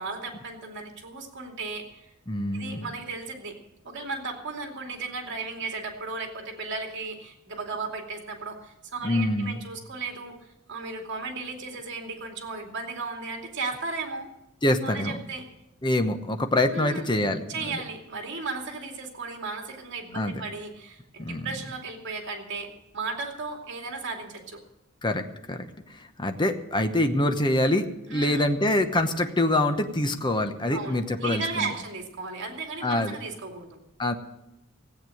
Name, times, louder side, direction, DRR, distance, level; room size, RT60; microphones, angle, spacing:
voice 1, 0.0-2.1 2.5-3.6 3.8-10.3 10.7-14.3 14.8-15.4 16.7-17.1 17.5-24.6 28.1-28.4 30.7-33.8, right 4 dB, 60° right, 2 dB, 2.6 m, -35 dB
voice 2, 2.3-2.9 9.0-9.6 14.6-15.2 15.8-17.8 20.1-20.4 21.2-21.5 25.0-31.7 32.8-33.2 34.0-34.1, left 1 dB, 20° left, 7 dB, 0.9 m, -25 dB
16.0 x 8.9 x 7.7 m, 0.88 s
head